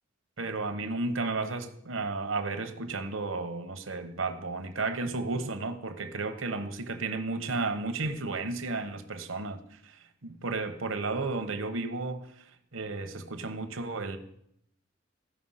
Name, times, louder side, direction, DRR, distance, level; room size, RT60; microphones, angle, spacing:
voice 1, 0.4-12.3 12.7-14.2, right 3 dB, 80° right, 1.0 m, -33 dB
14.0 x 5.6 x 5.6 m
head